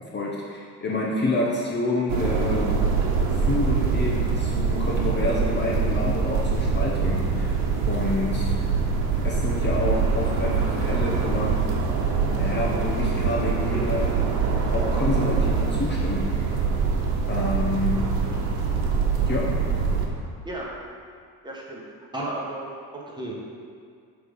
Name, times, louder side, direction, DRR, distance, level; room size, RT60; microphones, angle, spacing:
voice 1, 0.1-2.9 3.5-7.6 7.9-8.5 9.2-11.7 12.3-14.3 14.7-16.6 17.3-18.3 19.3-19.7, left 2 dB, 30° left, -3 dB, 0.9 m, -28 dB
sound 1, 2.1-20.1, right 5 dB, 90° right, 1.0 m, -24 dB
voice 2, 21.4-21.8 22.1-23.3, right 1 dB, 10° right, -5 dB, 1.5 m, -33 dB
7.9 x 3.5 x 5.5 m, 2.2 s
cardioid pair, 100°, 36 cm